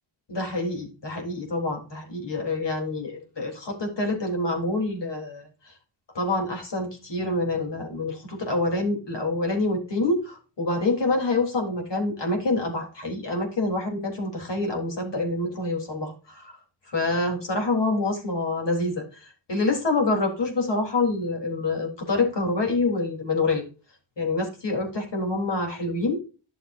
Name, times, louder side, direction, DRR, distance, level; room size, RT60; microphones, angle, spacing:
voice 1, 0.3-5.5 6.1-16.6 16.9-23.6 24.2-26.2, left 2 dB, 55° left, 1 dB, 3.9 m, -26 dB
12.0 x 6.9 x 2.7 m, 0.34 s
cardioid pair, 70°, 50 cm